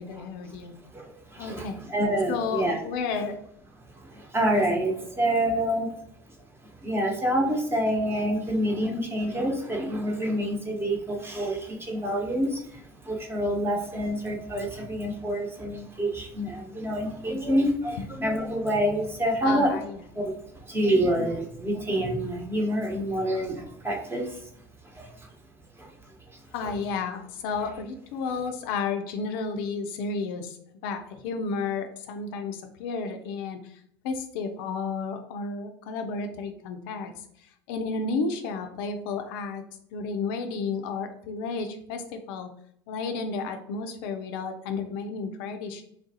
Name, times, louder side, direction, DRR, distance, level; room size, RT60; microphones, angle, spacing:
voice 1, 0.0-0.8 1.4-1.8 2.3-3.4 19.4-20.0 26.5-30.6 30.8-33.8 34.0-37.1 37.4-39.6 39.9-42.5 42.9-45.8, left 4 dB, 70° left, 6 dB, 0.4 m, -32 dB
voice 2, 0.9-2.8 3.9-5.9 6.6-19.8 20.1-24.5 24.9-25.3 25.8-25.9 26.3-26.7, right 1 dB, 20° right, 0 dB, 0.9 m, -27 dB
3.3 x 2.4 x 2.6 m, 0.69 s
hypercardioid pair, 75°, 13 cm